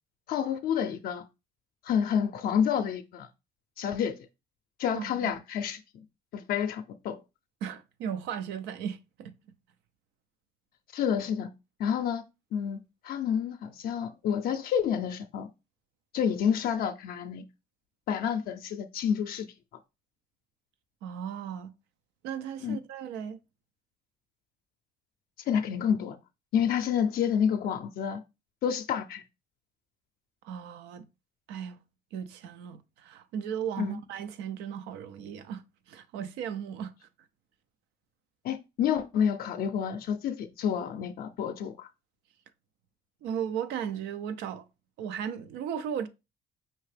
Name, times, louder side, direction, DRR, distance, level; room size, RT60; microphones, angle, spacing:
voice 1, 0.3-1.2 1.8-3.3 3.8-4.2 4.8-6.0 6.3-7.2 10.9-11.5 11.8-12.2 12.5-15.5 16.1-17.4 18.1-19.5 22.6-22.8 25.5-26.2 26.5-28.2 28.6-29.2 33.8-33.9 38.4-41.9, left 8 dB, 65° left, 0.5 m, -29 dB
voice 2, 4.9-5.3 7.6-9.3 21.0-21.7 22.2-23.4 30.4-31.1 31.5-31.8 32.1-36.9 43.2-44.7 45.0-46.1, right 8 dB, 90° right, 0.5 m, -36 dB
5.5 x 2.8 x 3.2 m
cardioid pair, 110°, 17 cm